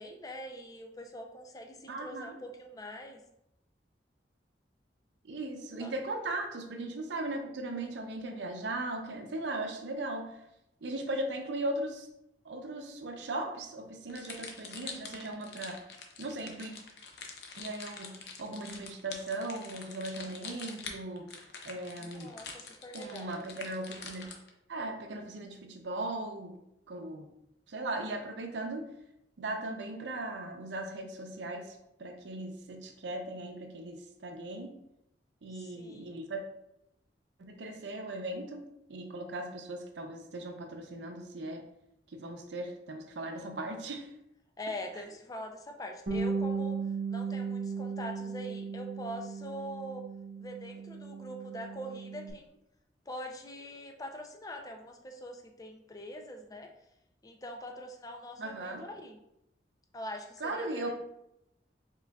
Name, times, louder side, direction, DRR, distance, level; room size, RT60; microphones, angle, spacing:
voice 1, 0.0-3.2 5.8-5.9 22.0-23.4 35.5-36.2 44.6-46.8 47.1-50.0 50.4-52.6 53.1-56.7 57.2-59.2 59.9-60.9, equal, 20° left, 3 dB, 0.4 m, -43 dB
voice 2, 1.9-2.4 5.2-10.3 10.8-12.1 12.4-15.8 16.2-16.7 17.6-22.3 22.9-24.3 24.7-26.6 26.9-27.3 27.7-28.9 29.4-34.7 35.4-36.4 37.4-38.6 38.9-41.6 42.1-44.1 58.4-58.8 60.4-60.9, right 2 dB, 85° right, 4 dB, 0.6 m, -38 dB
sound 1, 14.1-24.5, left 5 dB, 65° left, 0.6 m, -45 dB
Bass guitar, 46.1-52.3, right 5 dB, 65° right, 1.0 m, -36 dB
4.7 x 3.7 x 2.3 m, 0.83 s
head